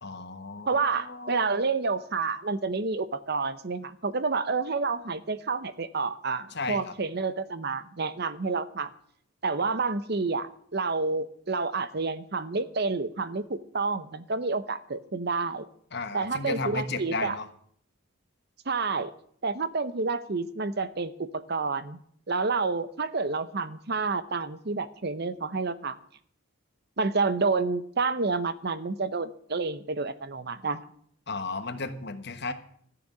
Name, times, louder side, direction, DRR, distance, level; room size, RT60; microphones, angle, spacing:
voice 1, 0.0-1.6 6.5-6.9 15.9-17.5 31.3-32.5, left 3 dB, 50° left, 9 dB, 1.3 m, -34 dB
voice 2, 0.7-8.9 9.4-15.7 16.1-17.4 18.7-19.1 19.4-22.0 22.3-26.0 27.0-30.8, right 4 dB, 50° right, 14 dB, 0.8 m, -29 dB
14.5 x 6.9 x 10.0 m, 0.63 s
head